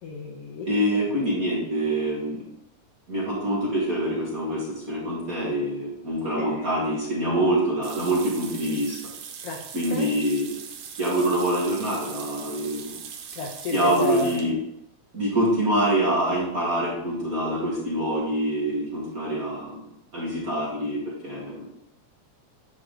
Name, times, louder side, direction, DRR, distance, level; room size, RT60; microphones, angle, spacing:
voice 1, 0.0-0.8 6.4-6.7 9.4-9.6 9.9-10.1 13.3-14.4, left 4 dB, 65° left, -1 dB, 1.7 m, -32 dB
voice 2, 0.6-2.4 3.1-9.0 9.7-10.5 11.0-13.0 13.7-14.5 15.1-19.8 20.1-21.8, right 1 dB, 35° right, -5 dB, 1.6 m, -25 dB
sound 1, 7.8-14.5, right 7 dB, 70° right, 1.7 m, -40 dB
9.7 x 4.7 x 3.8 m, 0.79 s
omnidirectional pair, 3.3 m